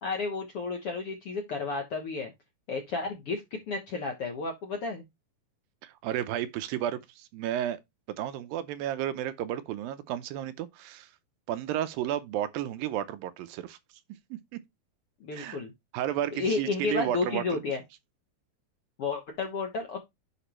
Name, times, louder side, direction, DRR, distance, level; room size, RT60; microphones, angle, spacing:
voice 1, 0.0-2.3 2.7-3.4 3.7-5.0 15.2-15.7 16.3-17.8 19.0-20.0, left 4 dB, 65° left, 1.5 m, -32 dB
voice 2, 5.8-7.8 8.2-11.1 11.5-13.8 14.3-14.6 15.3-15.6 15.9-17.6, right 11 dB, 80° right, 2.4 m, -32 dB
10.0 x 5.0 x 3.0 m
omnidirectional pair, 4.2 m